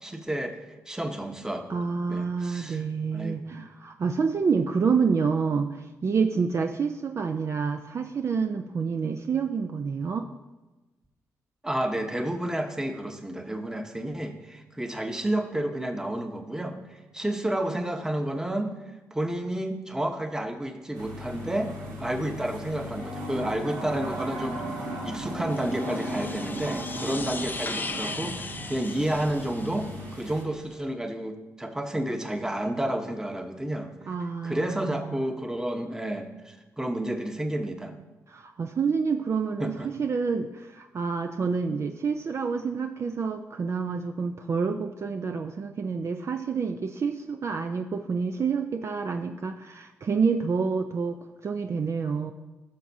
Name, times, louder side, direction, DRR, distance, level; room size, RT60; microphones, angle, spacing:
voice 1, 0.0-0.6 0.9-1.8 2.1-2.8 3.1-3.4 11.6-16.8 17.1-18.7 19.1-21.7 22.0-24.6 25.0-33.9 34.4-37.9 39.6-39.9, right 1 dB, 10° right, 5 dB, 1.1 m, -30 dB
voice 2, 1.7-10.3 34.1-35.2 38.3-52.3, right 5 dB, 50° right, 6 dB, 0.5 m, -28 dB
sound 1, 20.9-30.4, equal, 80° right, 1.7 m, -36 dB
sound 2, 25.5-30.2, left 3 dB, 30° left, 0.6 m, -38 dB
13.0 x 6.0 x 2.8 m, 1.1 s
supercardioid pair, 60°, 6 cm